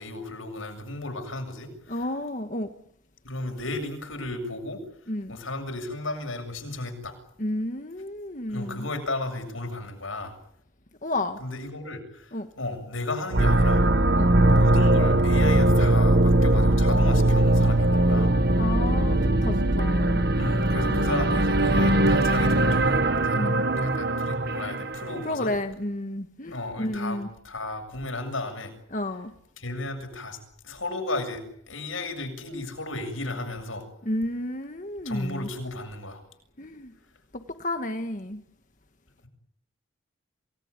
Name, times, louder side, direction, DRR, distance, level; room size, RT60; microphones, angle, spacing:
voice 1, 0.0-2.1 3.2-4.8 5.3-7.2 8.5-10.3 11.4-13.8 14.5-18.4 20.4-23.4 23.8-25.5 26.5-28.7 29.6-30.4 30.6-33.9 35.0-36.2, left 2 dB, 85° left, 7.3 m, -34 dB
voice 2, 1.9-2.7 5.1-5.4 7.4-8.9 11.0-11.4 12.3-12.5 14.2-14.3 18.5-20.3 20.9-21.0 23.3-23.6 25.2-27.3 28.9-29.3 34.0-35.5 36.6-36.9 37.3-38.4, left 1 dB, 40° left, 1.6 m, -31 dB
sound 1, 13.3-25.2, right 1 dB, 50° right, 1.4 m, -21 dB
28.0 x 19.5 x 9.7 m
head